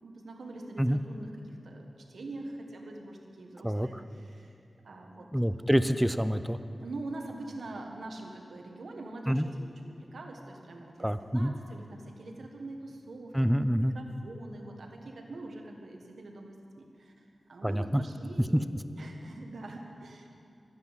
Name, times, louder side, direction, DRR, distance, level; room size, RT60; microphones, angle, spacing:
voice 1, 0.0-4.5 4.8-5.3 6.8-20.3, right 2 dB, 85° right, 2 dB, 1.5 m, -44 dB
voice 2, 5.3-6.6 9.3-9.5 11.0-11.5 13.3-13.9 17.6-18.0, equal, 5° right, 11 dB, 0.5 m, -26 dB
13.5 x 9.6 x 7.5 m, 2.5 s
wide cardioid pair, 85°, 0 cm